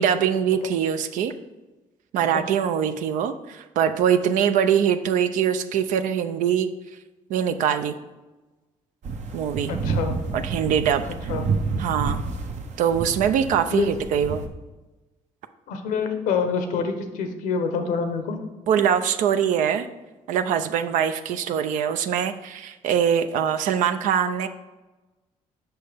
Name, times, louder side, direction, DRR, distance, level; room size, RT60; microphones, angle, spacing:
voice 1, 0.0-1.3 2.1-6.7 7.3-8.0 9.3-9.7 10.3-11.0 11.8-12.3 12.8-14.4 18.7-19.9 20.3-24.5, right 8 dB, 80° right, 9 dB, 0.4 m, -23 dB
sound 1, 9.0-14.5, right 4 dB, 60° right, 0.8 m, -29 dB
voice 2, 9.7-10.2 11.1-11.4 13.7-13.9 15.7-18.4, left 5 dB, 90° left, 6 dB, 0.8 m, -26 dB
6.1 x 5.5 x 3.4 m, 1.1 s
supercardioid pair, 75°, 13 cm